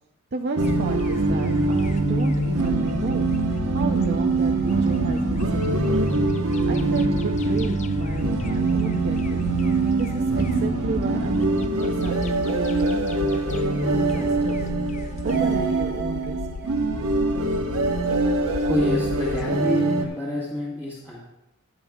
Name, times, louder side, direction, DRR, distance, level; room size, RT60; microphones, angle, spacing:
voice 1, 0.3-3.3 3.7-6.1 6.7-9.5 10.0-14.6 15.2-16.4, right 3 dB, 50° right, 3 dB, 0.6 m, -32 dB
sound 1, 0.6-19.5, left 4 dB, 35° left, 0.3 m, -34 dB
sound 2, 0.6-20.0, right 3 dB, 75° right, 1.1 m, -23 dB
voice 2, 18.6-21.2, left 1 dB, 15° left, -8 dB, 1.8 m, -29 dB
22.0 x 7.5 x 2.4 m, 0.90 s
head